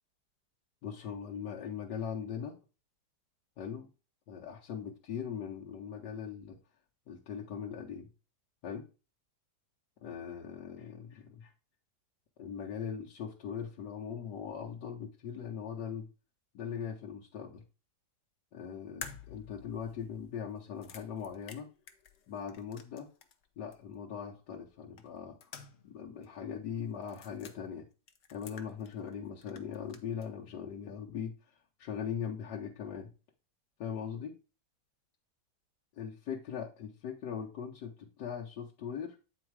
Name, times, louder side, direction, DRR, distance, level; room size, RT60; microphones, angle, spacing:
voice 1, 0.8-2.5 3.6-3.9 4.3-6.6 7.1-8.1 8.6-8.8 10.0-11.5 12.4-16.1 16.5-17.6 18.5-21.7 22.3-23.1 23.6-25.4 25.8-27.9 28.3-31.3 31.8-33.1 33.8-34.3 36.0-39.2, left 7 dB, 75° left, -1 dB, 1.4 m, -40 dB
sound 1, 19.0-23.4 23.7-23.8 25.0-26.0 26.2-26.3 27.0-27.6 28.1-29.1 29.4-30.3, left 6 dB, 50° left, 1.0 m, -50 dB
8.8 x 4.3 x 4.6 m, 0.34 s
omnidirectional pair, 1.8 m